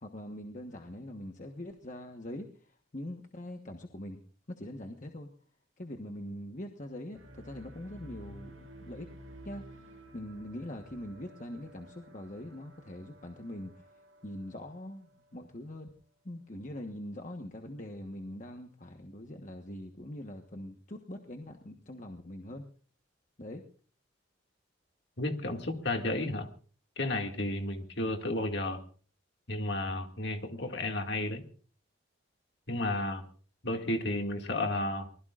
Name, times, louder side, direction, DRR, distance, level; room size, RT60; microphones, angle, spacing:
voice 1, 0.0-4.2 4.5-5.3 5.8-9.1 9.4-16.0 16.2-22.6 23.4-23.6, left 1 dB, 40° left, 4 dB, 1.2 m, -43 dB
sound 1, 7.1-15.4, equal, 75° right, 6.2 m, -52 dB
voice 2, 25.2-26.5 27.0-28.8 29.5-31.4 32.7-33.3 33.6-35.1, left 1 dB, 55° left, 4 dB, 2.2 m, -32 dB
24.5 x 20.5 x 2.5 m, 0.42 s
head